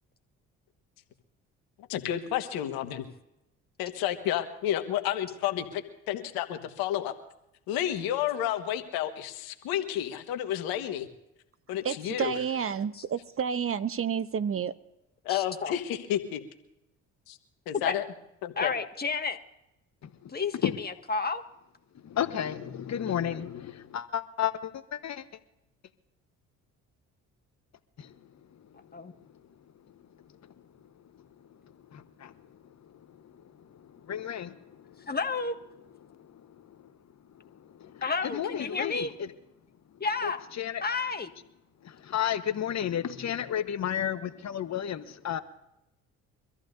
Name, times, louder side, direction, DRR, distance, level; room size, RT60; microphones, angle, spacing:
voice 1, 1.9-3.1 3.8-7.1 7.7-11.1 11.7-12.3 15.2-15.8 16.1-16.2 17.3-17.4 17.7-18.0 18.4-18.7, left 11 dB, 75° left, 7 dB, 1.5 m, -30 dB
voice 2, 11.8-14.7, right 7 dB, 40° right, 15 dB, 0.8 m, -30 dB
voice 3, 15.3-15.7 17.7-18.0 18.6-19.4 20.3-21.4 28.9-29.1 35.1-35.5 38.0-39.1 40.0-40.5 40.8-41.3, left 4 dB, 25° left, 6 dB, 1.7 m, -31 dB
voice 4, 22.0-25.2 28.0-28.2 28.6-28.7 30.3-30.5 31.1-31.3 31.6-35.1 36.2-36.9 37.3-39.3 40.2-40.3 40.6-40.8 41.8-45.4, left 10 dB, 50° left, 10 dB, 1.2 m, -33 dB
25.0 x 14.0 x 2.7 m, 0.87 s
hypercardioid pair, 60°, 36 cm